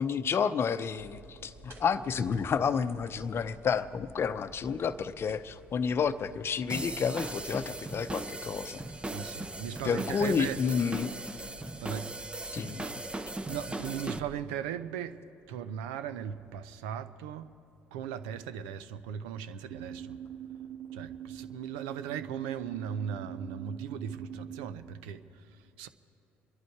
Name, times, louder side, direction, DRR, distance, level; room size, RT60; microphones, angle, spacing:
voice 1, 0.0-8.8 9.8-11.1 12.5-12.9, left 6 dB, 45° left, 0.7 m, -30 dB
sound 1, 1.0-14.3, right 1 dB, 50° right, 1.8 m, -54 dB
sound 2, 6.7-14.2, right 2 dB, 20° right, 0.7 m, -38 dB
voice 2, 9.1-10.6 11.8-12.1 13.4-17.6 17.9-20.2 20.9-25.2 25.8-25.9, right 8 dB, 85° right, 0.6 m, -38 dB
sound 3, 19.7-24.7, right 10 dB, 65° right, 1.4 m, -43 dB
27.0 x 11.0 x 4.6 m
supercardioid pair, 65°, 6 cm